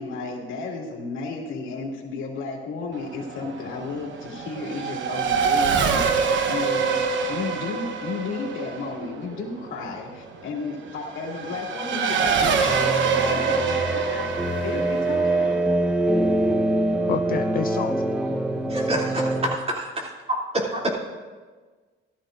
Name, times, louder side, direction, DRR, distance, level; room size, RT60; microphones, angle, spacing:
voice 1, 0.0-15.6, left 4 dB, 80° left, -2 dB, 2.4 m, -33 dB
Race car auto racing / Accelerating revving vroom, 2.9-17.0, right 5 dB, 70° right, 1.0 m, -26 dB
sound 1, 12.7-19.6, right 1 dB, 5° right, 0.9 m, -24 dB
voice 2, 17.1-18.0, left 9 dB, 45° left, 10 dB, 0.4 m, -28 dB
voice 3, 18.7-20.8, right 1 dB, 30° right, -2 dB, 2.9 m, -28 dB
16.0 x 13.0 x 2.6 m, 1.4 s
cardioid pair, 90°, 20 cm